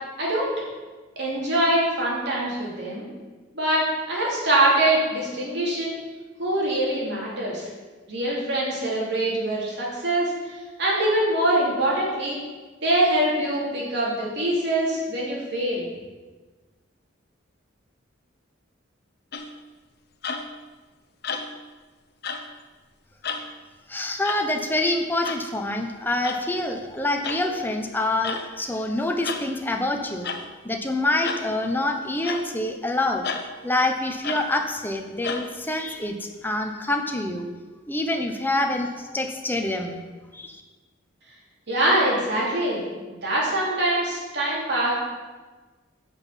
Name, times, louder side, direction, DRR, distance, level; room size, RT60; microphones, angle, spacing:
voice 1, 0.2-0.5 1.2-3.0 3.5-6.0 6.4-7.7 8.1-10.3 10.8-12.4 12.8-15.9 41.7-42.8 43.2-44.9, right 1 dB, 55° right, -4 dB, 3.1 m, -23 dB
sound 1, 19.3-19.6 20.2-20.6 21.2-21.7 22.2-22.5 23.2-23.5 24.2-24.4 25.2-25.4 26.2-26.4 27.2-27.5 28.2-28.5 29.2-29.5 30.2-30.5 31.2-31.5 32.2-32.5 33.2-33.5 34.2-34.5 35.2-35.5, left 5 dB, 50° left, 0.9 m, -32 dB
voice 2, 23.9-30.3 30.6-33.3 33.6-36.2 36.4-37.5 37.9-40.0 40.3-40.6, left 2 dB, 10° left, 4 dB, 0.9 m, -26 dB
9.7 x 6.0 x 7.4 m, 1.3 s
head